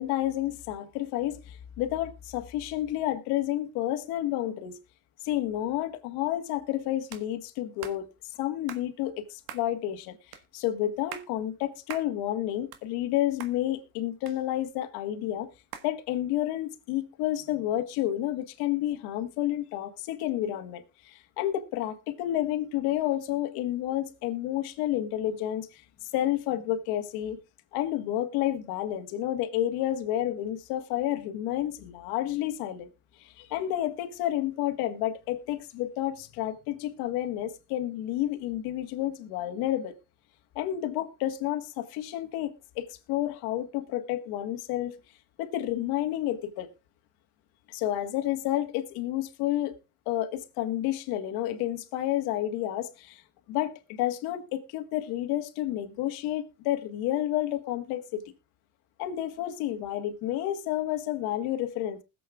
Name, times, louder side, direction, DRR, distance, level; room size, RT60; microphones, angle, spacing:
voice 1, 0.0-4.8 5.2-8.1 8.4-10.2 10.5-15.5 15.8-27.4 27.7-32.9 33.2-39.9 40.5-45.0 45.4-46.7 47.7-49.7 50.1-53.2 53.5-58.2 59.0-62.0, left 13 dB, 85° left, 1.5 m, -30 dB
sound 1, 7.1-7.3 7.8-8.0 8.7-8.9 9.5-9.7 10.3-10.4 10.9-11.3 11.9-12.1 12.5-13.1 13.4-13.5 14.3-14.8 15.7-15.9, right 10 dB, 75° right, 1.4 m, -42 dB
20.5 x 7.7 x 2.3 m
cardioid pair, 100°, 37 cm